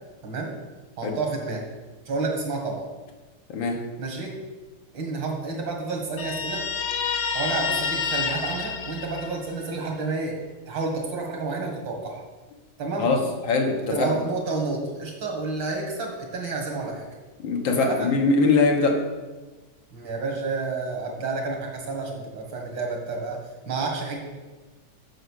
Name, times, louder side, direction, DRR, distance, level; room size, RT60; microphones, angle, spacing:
voice 1, 1.0-1.6 2.1-2.9 4.0-4.3 4.9-6.7 7.3-10.4 10.7-12.2 12.8-13.1 13.9-17.1 17.8-18.1 19.9-24.2, right 3 dB, 80° right, 0 dB, 2.5 m, -30 dB
voice 2, 3.5-3.8 13.0-14.2 17.4-19.0, left 3 dB, 85° left, 2 dB, 2.0 m, -22 dB
Guitar, 6.2-9.7, left 5 dB, 65° left, 1.3 m, -28 dB
7.8 x 6.2 x 6.4 m, 1.3 s
omnidirectional pair, 2.0 m